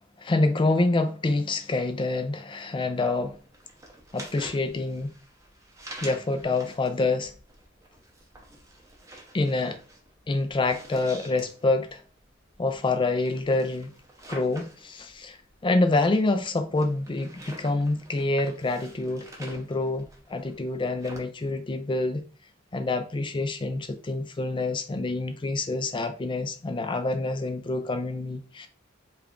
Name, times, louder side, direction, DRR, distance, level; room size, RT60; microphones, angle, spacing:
voice 1, 0.2-3.4 4.1-5.1 6.0-7.3 9.3-9.8 10.3-12.0 12.6-13.9 14.3-15.4 15.6-22.2 22.7-28.7, left 2 dB, 25° left, 0.4 m, -27 dB
sound 1, 3.2-21.2, right 1 dB, 15° right, 0.7 m, -47 dB
3.3 x 2.4 x 3.6 m
head